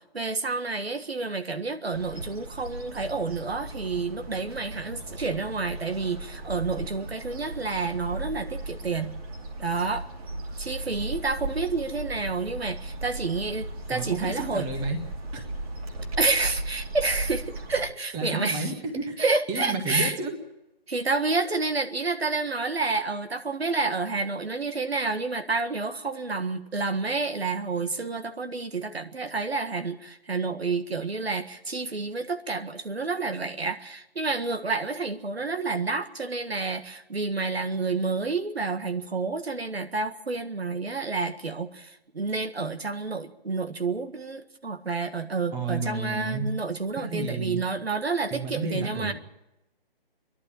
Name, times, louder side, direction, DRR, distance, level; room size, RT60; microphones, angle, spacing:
voice 1, 0.1-9.2 9.6-10.0 10.6-14.7 16.2-18.7 19.2-20.2 20.9-49.1, right 3 dB, 90° right, 7 dB, 1.7 m, -29 dB
sound 1, 1.9-17.9, right 2 dB, 35° right, 2.6 m, -37 dB
voice 2, 13.9-15.0 15.3-15.4 18.1-19.2 19.5-20.3 45.5-46.5 47.0-47.6 48.3-49.1, right 3 dB, 15° right, 4 dB, 1.7 m, -31 dB
26.0 x 11.5 x 8.9 m, 0.92 s
figure-of-eight pair, 155°, 30 cm